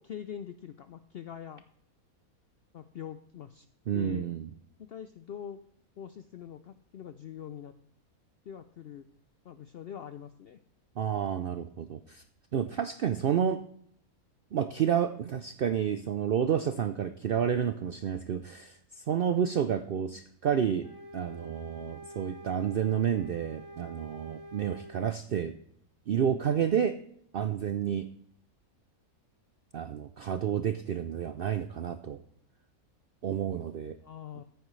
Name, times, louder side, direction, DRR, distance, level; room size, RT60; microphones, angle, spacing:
voice 1, 0.0-1.6 2.7-3.7 3.9-4.3 4.8-5.6 6.0-7.7 8.5-9.1 9.4-10.6 34.0-34.4, left 9 dB, 75° left, 11 dB, 0.5 m, -43 dB
voice 2, 3.9-4.5 11.0-12.2 12.5-13.6 14.5-25.5 26.1-27.0 27.3-28.1 29.7-32.2 33.2-34.0, right 8 dB, 70° right, 10 dB, 0.5 m, -30 dB
sound 1, 20.8-25.0, equal, 20° right, 1.2 m, -47 dB
14.0 x 9.3 x 3.2 m, 0.68 s
omnidirectional pair, 1.5 m